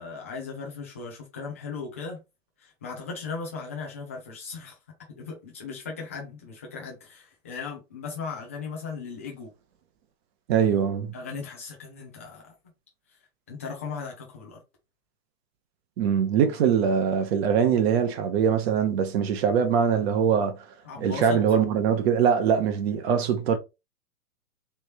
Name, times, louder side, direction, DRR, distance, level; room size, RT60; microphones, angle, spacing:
voice 1, 0.0-2.2 2.6-4.7 5.1-9.5 11.1-12.5 13.5-14.6 20.8-21.4, left 5 dB, 10° left, 0.3 m, -37 dB
voice 2, 10.5-11.1 16.0-20.6 21.0-23.6, right 7 dB, 40° right, 1.0 m, -22 dB
3.4 x 3.1 x 4.3 m
hypercardioid pair, 130°, 47 cm